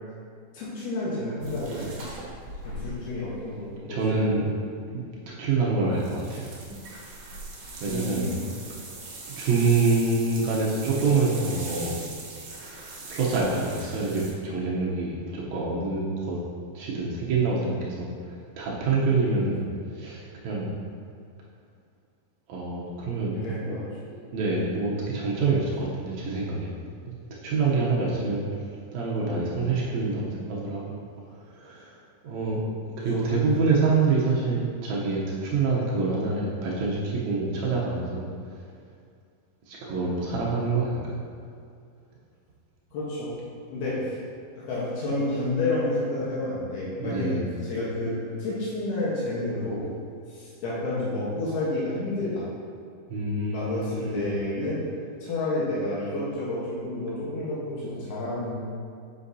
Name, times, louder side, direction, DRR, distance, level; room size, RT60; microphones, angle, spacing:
voice 1, 0.5-1.9 2.6-4.3 7.8-8.4 23.3-23.8 27.5-28.2 33.1-33.3 42.9-43.4 43.7-44.1 44.6-47.4 47.7-49.9 50.3-52.5 53.5-54.8 55.2-58.6, left 2 dB, 75° left, -8 dB, 3.1 m, -30 dB
sound 1, 1.4-3.7 5.9-14.3, right 2 dB, 60° right, 1.7 m, -40 dB
voice 2, 3.8-4.5 4.9-5.0 5.4-6.5 7.8-8.3 9.4-12.0 13.1-16.4 16.7-19.7 19.9-20.7 22.5-23.8 24.1-26.8 27.4-28.4 28.9-31.0 31.5-31.9 32.2-32.7 33.0-38.3 39.7-41.2 43.7-43.8 47.0-47.5 53.1-54.3, right 3 dB, 90° right, -5 dB, 1.5 m, -26 dB
7.9 x 7.0 x 2.7 m, 2.3 s
omnidirectional pair, 4.5 m